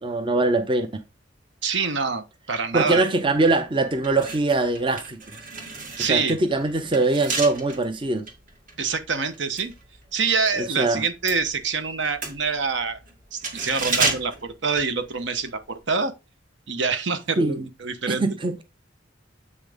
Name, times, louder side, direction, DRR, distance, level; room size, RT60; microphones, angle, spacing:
voice 1, 0.0-1.0 2.7-5.2 6.0-8.3 10.6-11.0 17.4-17.6 18.1-18.6, right 2 dB, 25° right, 0.7 m, -22 dB
voice 2, 1.6-3.0 6.0-6.4 8.8-9.7 10.1-13.0 13.3-16.1 16.7-18.3, right 5 dB, 70° right, 1.1 m, -26 dB
sound 1, 4.0-10.6 10.9-15.5 15.8-16.0, right 4 dB, 45° right, 1.9 m, -32 dB
8.0 x 5.8 x 3.5 m
head